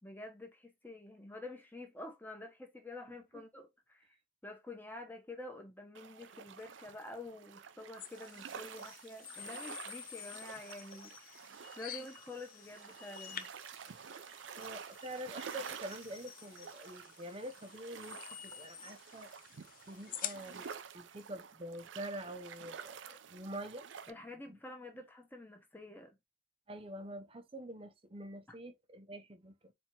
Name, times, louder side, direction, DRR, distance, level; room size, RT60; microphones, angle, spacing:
voice 1, 0.0-4.1 4.4-11.5 11.8-13.5 24.1-26.2, left 2 dB, 10° left, 0.9 m, -48 dB
sound 1, 5.9-24.1, right 7 dB, 75° right, 0.5 m, -50 dB
sound 2, 8.0-20.8, left 11 dB, 45° left, 0.4 m, -49 dB
voice 2, 14.6-19.3 19.9-20.7 20.9-23.8 24.5-24.6 26.7-29.7, right 1 dB, 30° right, 0.7 m, -46 dB
4.4 x 3.4 x 2.9 m
head